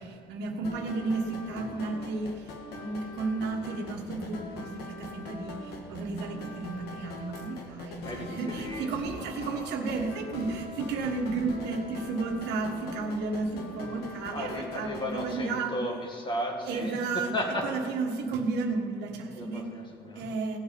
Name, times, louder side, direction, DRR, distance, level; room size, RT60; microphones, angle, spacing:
voice 1, 0.0-15.8 16.6-17.3 17.6-19.7 20.1-20.6, right 3 dB, 85° right, 3 dB, 1.4 m, -33 dB
sound 1, 0.6-15.4, left 3 dB, 75° left, 1.8 m, -42 dB
voice 2, 8.0-9.2 14.3-17.7 19.3-20.3, left 1 dB, 30° left, 1 dB, 2.3 m, -35 dB
17.0 x 8.4 x 5.1 m, 2.2 s
cardioid pair, 110°, 17 cm